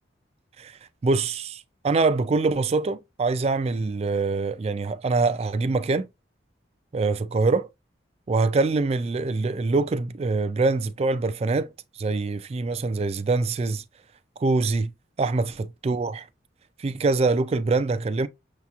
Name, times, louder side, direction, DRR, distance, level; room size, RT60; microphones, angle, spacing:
voice 1, 1.0-6.1 6.9-7.7 8.3-11.7 12.0-13.8 14.4-14.9 15.2-16.3 16.8-18.3, right 3 dB, 35° right, 0.3 m, -24 dB
6.6 x 2.9 x 2.3 m
head